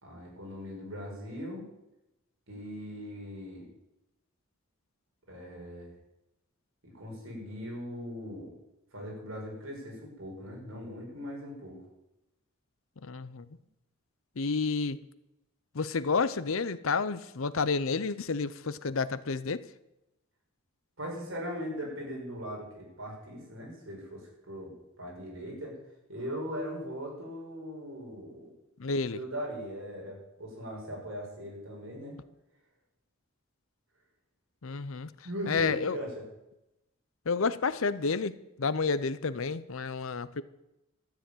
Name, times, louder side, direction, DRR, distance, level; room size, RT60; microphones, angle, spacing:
voice 1, 0.0-1.6 2.5-3.6 5.3-5.9 6.8-8.5 8.9-11.8 21.0-25.7 26.1-28.5 29.1-32.2 35.2-36.2, equal, 60° right, -2 dB, 5.6 m, -40 dB
voice 2, 13.0-13.4 14.4-15.0 15.7-19.6 28.8-29.2 34.6-35.1 35.5-36.0 37.3-40.4, left 4 dB, 65° left, 15 dB, 0.7 m, -30 dB
13.0 x 7.1 x 9.1 m, 0.91 s
head